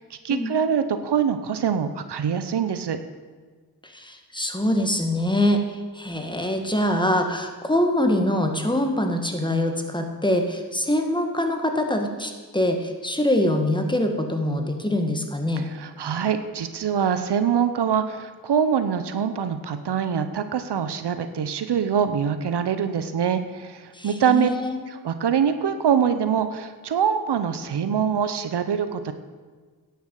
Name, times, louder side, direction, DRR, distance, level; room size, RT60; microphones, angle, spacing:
voice 1, 0.0-3.0 15.6-24.5 24.9-29.1, right 7 dB, 90° right, 10 dB, 0.8 m, -24 dB
voice 2, 3.8-15.7 23.9-24.8, left 1 dB, 10° left, 4 dB, 1.7 m, -24 dB
11.0 x 6.9 x 7.6 m, 1.5 s
cardioid pair, 55°, 39 cm